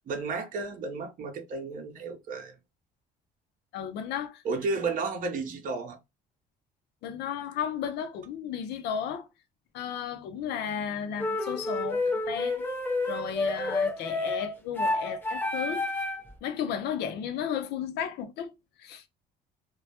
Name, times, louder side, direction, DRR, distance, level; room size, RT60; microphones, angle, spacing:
voice 1, 0.1-2.5 4.4-6.0, right 4 dB, 50° right, 0.6 m, -32 dB
voice 2, 3.7-4.4 7.0-9.3 9.7-12.7 13.1-15.9 16.4-18.5 18.8-19.0, left 8 dB, 80° left, 0.5 m, -34 dB
sound 1, 11.2-16.3, left 2 dB, 10° left, 0.5 m, -29 dB
2.1 x 2.0 x 2.8 m
cardioid pair, 110°, 17 cm